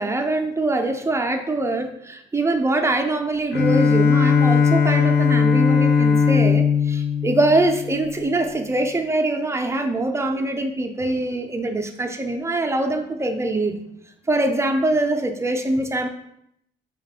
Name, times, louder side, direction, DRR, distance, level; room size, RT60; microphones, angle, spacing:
voice 1, 0.0-13.8 14.3-16.1, right 2 dB, 15° right, 4 dB, 0.5 m, -23 dB
Bowed string instrument, 3.5-8.2, left 6 dB, 55° left, 0.7 m, -18 dB
4.5 x 2.4 x 3.6 m, 0.75 s
cardioid pair, 90°, 20 cm